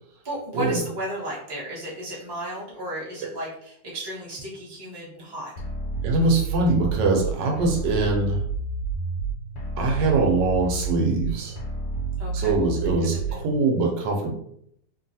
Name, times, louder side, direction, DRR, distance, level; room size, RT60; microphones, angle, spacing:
voice 1, 0.2-5.5 12.2-12.7 13.0-13.5, equal, 20° right, -7 dB, 0.7 m, -34 dB
sound 1, 5.6-13.6, right 3 dB, 85° left, 1.3 m, -29 dB
voice 2, 6.0-8.4 9.8-11.6 12.3-14.3, right 3 dB, 85° right, 1 dB, 1.3 m, -23 dB
3.1 x 2.3 x 2.7 m, 0.70 s
omnidirectional pair, 1.9 m